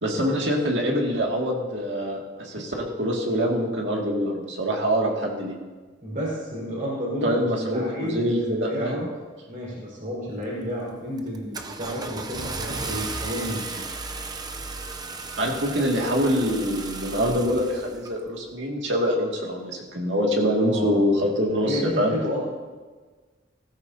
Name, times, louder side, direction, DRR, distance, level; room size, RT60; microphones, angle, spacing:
voice 1, 0.0-5.6 7.2-9.1 15.4-22.1, equal, 70° right, -1 dB, 2.2 m, -25 dB
voice 2, 6.0-9.1 9.5-13.8 20.7-21.1 21.5-22.4, equal, 50° right, -5 dB, 4.8 m, -31 dB
Car / Engine starting, 10.4-10.7 11.2-18.1, right 3 dB, 20° right, 0.6 m, -35 dB
16.5 x 14.0 x 2.8 m, 1.4 s
head